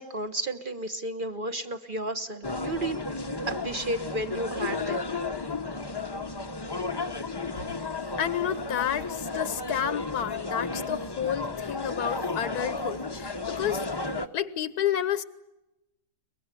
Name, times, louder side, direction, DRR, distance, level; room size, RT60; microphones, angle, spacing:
voice 1, 0.0-3.0 3.5-5.1, right 1 dB, 35° right, 8 dB, 1.1 m, -32 dB
sound 1, 2.4-14.3, left 3 dB, 20° left, 0.8 m, -33 dB
voice 2, 8.2-13.8 14.3-15.2, left 9 dB, 75° left, 15 dB, 1.6 m, -30 dB
23.0 x 21.5 x 9.7 m, 0.95 s
omnidirectional pair, 1.6 m